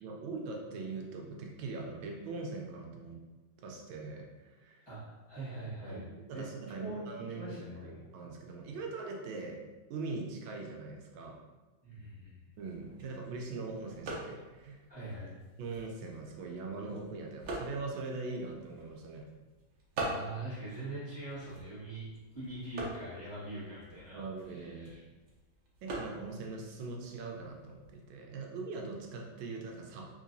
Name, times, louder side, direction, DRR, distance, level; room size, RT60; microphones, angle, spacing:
voice 1, 0.0-3.2 3.6-4.9 5.9-6.0 6.3-9.6 9.9-11.4 12.6-14.9 15.6-19.3 24.1-24.9 25.8-30.1, right 3 dB, 85° right, 1 dB, 1.4 m, -41 dB
voice 2, 4.8-6.0 6.3-7.0 7.3-7.9 11.8-12.4 14.9-15.4 20.0-22.1 22.3-24.2 24.5-25.0, right 2 dB, 15° left, -12 dB, 1.2 m, -43 dB
sound 1, 12.5-28.1, right 2 dB, 65° right, 0.8 m, -45 dB
3.8 x 3.1 x 2.6 m, 1.2 s
omnidirectional pair, 2.2 m